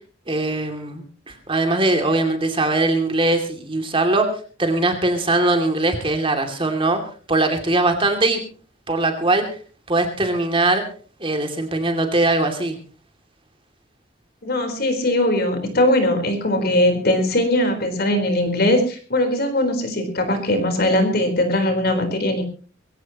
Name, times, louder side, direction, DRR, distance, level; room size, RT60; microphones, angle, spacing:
voice 1, 0.3-4.3 4.6-7.0 7.3-8.4 8.9-9.5 9.9-10.8 11.2-12.8, right 2 dB, 25° right, 5 dB, 2.6 m, -21 dB
voice 2, 14.4-22.4, left 1 dB, 50° left, 6 dB, 4.2 m, -20 dB
22.0 x 17.0 x 3.0 m, 0.39 s
head